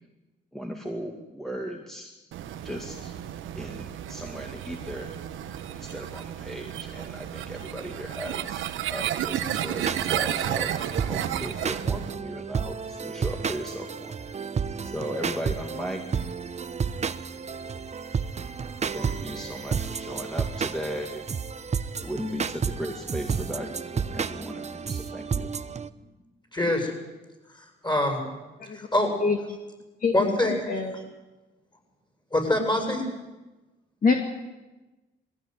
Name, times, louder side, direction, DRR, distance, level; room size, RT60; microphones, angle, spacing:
voice 1, 0.5-2.1 2.6-3.1 3.6-5.1 5.7-14.4 14.8-16.3 18.9-21.3 22.0-25.5, equal, ahead, 2 dB, 2.2 m, -37 dB
sound 1, 2.3-12.1, right 10 dB, 80° right, 1.3 m, -32 dB
sound 2, 9.8-25.9, right 6 dB, 35° right, 0.9 m, -31 dB
voice 2, 26.5-26.9 27.8-28.2 28.7-29.2 30.1-30.8 32.3-33.1, left 1 dB, 20° left, 3 dB, 7.8 m, -24 dB
voice 3, 30.0-30.9 34.0-34.1, left 4 dB, 45° left, 3 dB, 2.3 m, -25 dB
21.0 x 16.0 x 9.6 m, 1.1 s
cardioid pair, 90°, 20 cm